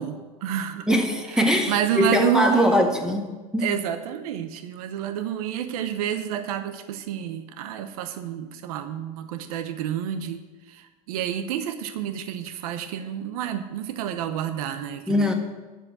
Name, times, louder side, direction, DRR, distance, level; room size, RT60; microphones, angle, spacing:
voice 1, 0.0-0.9 1.3-2.9 3.6-15.3, right 10 dB, 85° right, 9 dB, 0.9 m, -29 dB
voice 2, 0.9-3.3 3.5-3.7 15.1-15.3, equal, 5° right, 2 dB, 1.7 m, -21 dB
10.5 x 7.4 x 7.7 m, 1.2 s
supercardioid pair, 120°, 18 cm